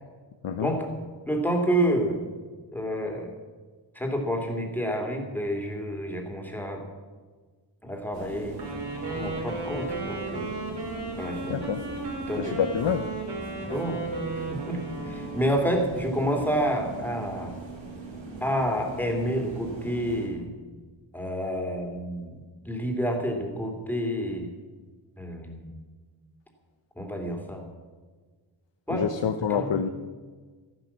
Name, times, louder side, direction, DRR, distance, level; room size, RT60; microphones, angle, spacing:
voice 1, 1.3-2.2 2.7-3.3 3.9-6.8 7.8-8.6 9.1-10.5 11.2-11.7 12.3-12.6 13.6-14.1 14.4-17.6 18.4-20.5 21.1-22.4 22.6-24.5 25.2-25.7 27.0-27.6 28.9-29.1 29.5-29.8, equal, 5° left, 2 dB, 2.9 m, -29 dB
sound 1, 8.1-20.3, right 3 dB, 80° right, 3.6 m, -41 dB
Wind instrument woodwind instrument, 8.5-15.8, right 3 dB, 60° right, 4.3 m, -35 dB
voice 2, 11.5-11.8 12.4-13.1 28.9-29.9, left 7 dB, 70° left, 8 dB, 0.9 m, -27 dB
13.5 x 12.0 x 7.3 m, 1.4 s
wide cardioid pair, 120°, 45 cm